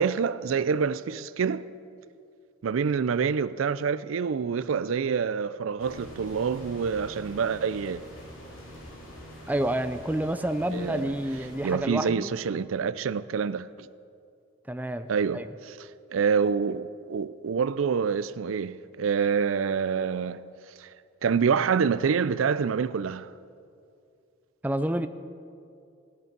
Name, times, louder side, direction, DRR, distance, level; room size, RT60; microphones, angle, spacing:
voice 1, 0.0-1.7 2.6-8.0 10.7-11.1 11.6-13.9 15.1-15.4 16.1-20.4 20.8-20.9 21.2-23.3, right 6 dB, 80° right, 0.4 m, -26 dB
sound 1, 5.8-11.8, equal, 80° left, 3.2 m, -45 dB
voice 2, 9.5-12.3 14.7-15.5 24.6-25.1, right 1 dB, 10° right, 0.4 m, -29 dB
16.5 x 10.5 x 6.0 m
head